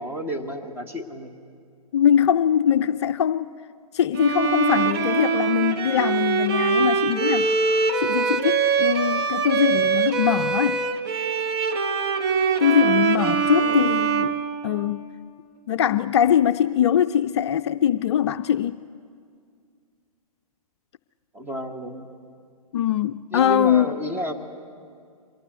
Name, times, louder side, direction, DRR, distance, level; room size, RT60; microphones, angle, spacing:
voice 1, 0.0-1.3 12.8-13.1 13.5-13.9 21.3-22.1 23.3-24.3, equal, 10° right, 2 dB, 1.7 m, -32 dB
voice 2, 1.9-3.5 3.9-7.5 8.0-10.8 12.6-14.3 14.6-15.1 15.7-18.8 22.7-24.0, left 10 dB, 45° left, 10 dB, 0.5 m, -22 dB
Bowed string instrument, 4.2-15.2, right 6 dB, 40° right, 1.5 m, -23 dB
24.0 x 19.0 x 8.2 m, 2.2 s
figure-of-eight pair, 120°, 19 cm